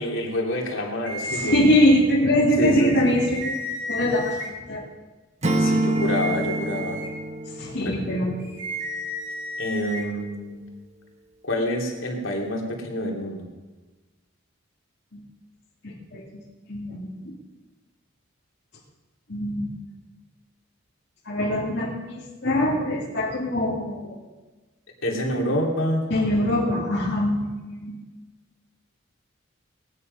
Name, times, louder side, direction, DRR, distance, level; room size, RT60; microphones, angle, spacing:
voice 1, 0.0-1.6 2.6-3.2 5.6-7.0 7.8-8.0 9.6-10.7 11.4-13.5 25.0-26.1, left 1 dB, 75° left, 0 dB, 3.0 m, -27 dB
sound 1, 1.1-2.0 2.8-4.5 5.8-7.1 8.4-10.0, right 1 dB, 60° right, 3.0 m, -33 dB
voice 2, 1.3-4.4 4.7-4.8 7.6-8.5 15.1-15.2 15.8-16.3 16.7-17.3 19.3-19.7 21.3-24.2 26.1-28.0, left 1 dB, 55° left, -6 dB, 2.4 m, -23 dB
Acoustic guitar / Strum, 5.4-8.5, right 1 dB, 35° right, 1.0 m, -26 dB
19.0 x 10.5 x 5.5 m, 1.2 s
head